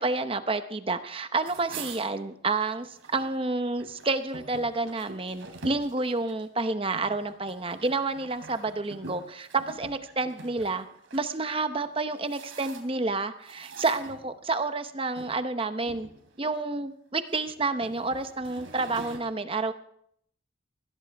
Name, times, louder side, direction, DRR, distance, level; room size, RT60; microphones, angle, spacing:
voice 1, 0.0-10.9 11.1-16.1 16.4-19.7, right 3 dB, 25° right, 10 dB, 0.8 m, -29 dB
sound 1, 1.4-3.3 3.6-11.2 11.9-13.1 13.5-14.7 15.2-15.4 15.8-16.6 17.2-19.2, right 3 dB, 80° right, 3.2 m, -45 dB
20.5 x 16.0 x 3.5 m, 0.68 s
head